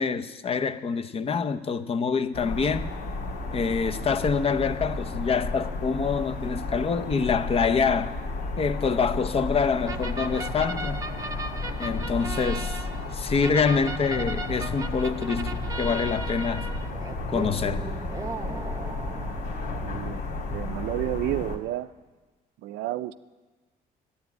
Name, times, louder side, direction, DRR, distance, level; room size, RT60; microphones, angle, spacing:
voice 1, 0.0-2.9 3.5-8.1 8.6-11.0 11.8-12.8 13.1-16.7 17.3-17.8, left 5 dB, 35° left, 0.7 m, -26 dB
sound 1, 2.3-21.6, left 2 dB, 75° left, 2.0 m, -33 dB
sound 2, 9.9-20.2, right 3 dB, 20° right, 0.8 m, -37 dB
voice 2, 19.8-20.2 20.5-21.9 22.6-23.1, right 15 dB, 85° right, 0.5 m, -30 dB
11.5 x 9.8 x 9.2 m
cardioid pair, 110°, 17 cm